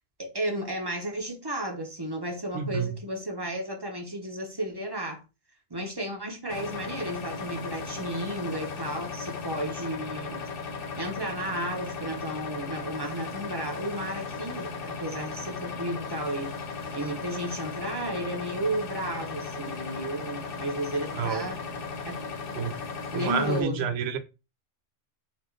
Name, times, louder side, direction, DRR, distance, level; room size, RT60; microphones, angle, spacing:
voice 1, 0.2-5.2 5.7-10.4 11.0-16.5 16.9-21.6 22.0-22.1 23.1-23.9, right 1 dB, 25° right, 0.6 m, -33 dB
voice 2, 2.5-3.0 21.2-21.4 22.6-22.8 23.1-24.2, right 6 dB, 60° right, 0.7 m, -29 dB
Compressor Motor, 6.5-23.6, left 4 dB, 55° left, 0.8 m, -36 dB
4.2 x 2.3 x 4.5 m
omnidirectional pair, 1.4 m